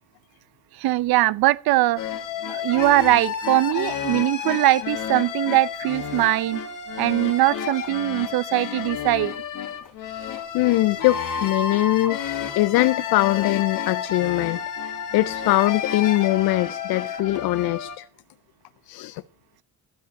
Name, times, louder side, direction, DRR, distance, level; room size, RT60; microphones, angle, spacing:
voice 1, 0.8-2.0 2.5-6.6 7.0-9.3, right 17 dB, 80° right, 0.6 m, -21 dB
sound 1, 2.0-18.0, left 8 dB, 55° left, 2.0 m, -30 dB
voice 2, 10.5-14.6 14.9-18.1 18.9-19.2, left 17 dB, 90° left, 0.5 m, -22 dB
12.5 x 5.0 x 8.3 m
cardioid pair, 160°, 36 cm